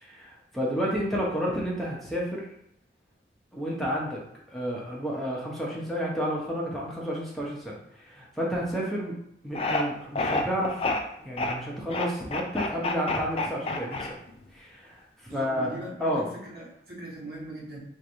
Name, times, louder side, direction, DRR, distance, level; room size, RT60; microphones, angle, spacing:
voice 1, 0.0-2.5 3.5-4.2 4.5-7.8 8.0-9.2 9.4-10.8 11.2-14.2 14.5-16.3, equal, ahead, -4 dB, 0.9 m, -31 dB
sound 1, 9.5-9.8 10.2-11.0 11.4-11.5 11.9-14.4, left 2 dB, 30° left, 0.4 m, -28 dB
voice 2, 15.3-17.8, right 1 dB, 60° right, -5 dB, 1.3 m, -40 dB
3.3 x 2.6 x 4.3 m, 0.76 s
head